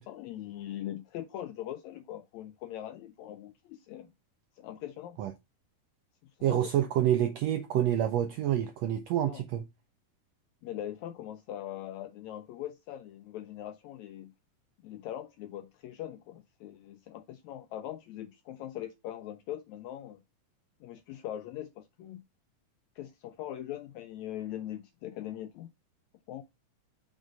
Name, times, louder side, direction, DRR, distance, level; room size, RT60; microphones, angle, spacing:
voice 1, 0.0-4.1 4.5-5.2 6.4-6.7 9.3-9.4 10.6-14.3 14.8-20.2 20.8-22.2 22.9-25.7 26.3-26.4, left 12 dB, 85° left, 1.6 m, -41 dB
voice 2, 6.4-9.6, right 11 dB, 80° right, 1.5 m, -27 dB
6.3 x 3.7 x 5.2 m
omnidirectional pair, 3.7 m